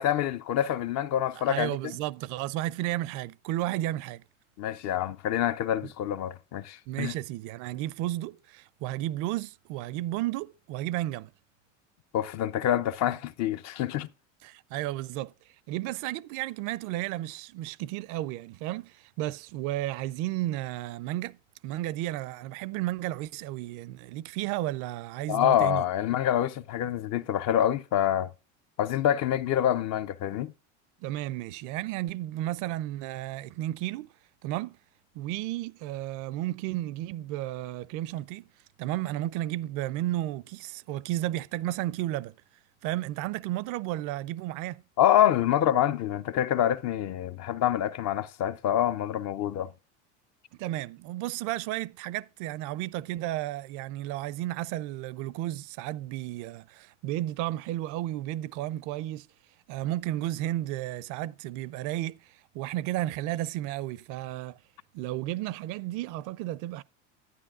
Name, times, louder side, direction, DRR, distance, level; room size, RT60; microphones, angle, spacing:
voice 1, 0.0-1.8 4.6-7.1 12.1-14.1 25.3-28.3 28.8-30.5 45.0-49.7, left 11 dB, 50° left, 0.6 m, -26 dB
voice 2, 1.5-4.2 6.9-11.3 14.4-15.3 15.7-21.4 21.6-25.8 31.0-34.1 34.4-34.8 35.1-38.5 38.8-42.3 42.8-44.8 50.6-59.3 59.7-64.6 64.9-66.8, right 15 dB, 55° right, 0.5 m, -33 dB
11.0 x 9.7 x 2.4 m
supercardioid pair, 110°, 36 cm